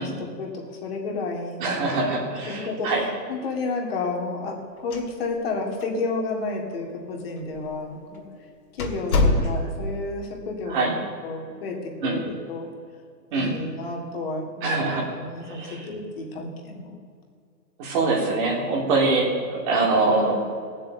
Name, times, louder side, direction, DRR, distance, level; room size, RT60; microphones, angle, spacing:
voice 1, 0.0-1.9 2.4-8.2 8.7-12.7 13.3-17.0, left 3 dB, 35° left, 1 dB, 2.4 m, -31 dB
voice 2, 1.6-3.0 9.5-9.6 10.7-10.9 12.0-12.2 13.3-13.5 14.6-15.0 15.4-15.8 17.8-20.6, right 3 dB, 30° right, -2 dB, 3.3 m, -24 dB
sound 1, 4.8-5.5 5.8-5.9 6.7-6.8 7.5-7.7 8.1-8.2 8.8-9.9, left 2 dB, 60° left, 2.8 m, -24 dB
17.5 x 7.7 x 7.6 m, 2.2 s
hypercardioid pair, 165°, 49 cm